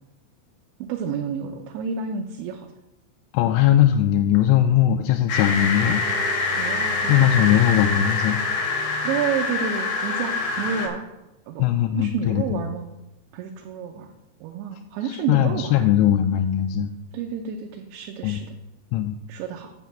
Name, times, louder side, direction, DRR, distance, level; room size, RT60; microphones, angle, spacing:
voice 1, 0.8-2.7 6.6-7.3 9.0-11.0 11.5-11.6 11.9-12.9 13.3-14.1 14.4-15.9 17.1-18.6 19.3-19.7, right 6 dB, 80° right, 2 dB, 2.9 m, -30 dB
voice 2, 3.3-6.2 7.0-8.4 11.6-12.6 15.1-16.9 18.2-18.4 18.9-19.2, left 11 dB, 85° left, 5 dB, 3.0 m, -20 dB
sound 1, 5.3-10.9, left 3 dB, 60° left, 2.2 m, -25 dB
8.1 x 5.7 x 7.3 m, 0.95 s
omnidirectional pair, 5.5 m